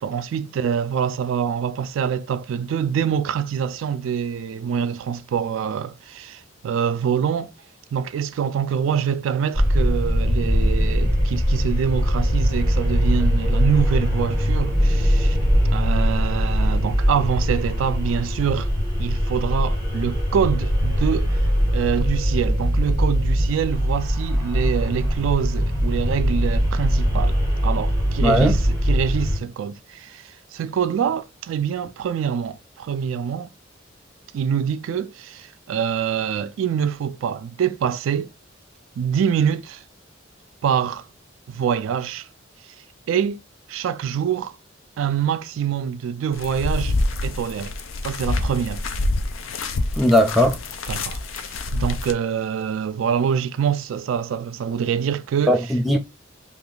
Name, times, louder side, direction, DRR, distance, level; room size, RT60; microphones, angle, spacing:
voice 1, 0.0-7.5 7.9-15.4 15.7-18.7 19.0-21.4 21.7-33.5 34.3-38.3 39.0-39.8 40.6-41.1 41.5-42.3 43.1-43.4 43.7-44.5 45.0-47.0 47.2-47.7 48.0-48.8 50.9-55.5, right 7 dB, 80° right, 0.3 m, -25 dB
sound 1, 9.5-29.4, equal, 20° left, 1.7 m, -21 dB
voice 2, 28.2-28.5 49.9-50.6 55.5-56.0, equal, ahead, 0.5 m, -18 dB
sound 2, 46.3-52.1, left 2 dB, 80° left, 0.5 m, -26 dB
2.9 x 2.5 x 3.7 m
head